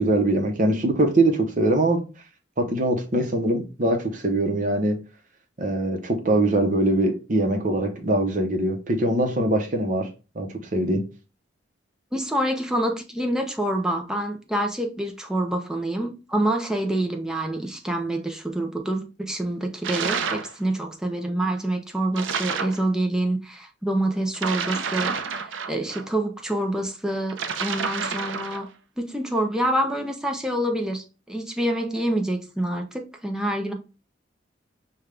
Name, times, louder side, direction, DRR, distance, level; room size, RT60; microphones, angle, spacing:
voice 1, 0.0-2.0 2.6-5.0 5.6-10.1 10.3-11.0, right 1 dB, 40° right, 0.7 m, -22 dB
voice 2, 12.1-28.7 29.0-33.7, right 1 dB, 5° right, 0.5 m, -27 dB
sound 1, 19.8-20.5 22.1-22.8 24.3-26.0 27.3-28.7, right 6 dB, 90° right, 0.5 m, -29 dB
5.2 x 2.3 x 3.2 m
head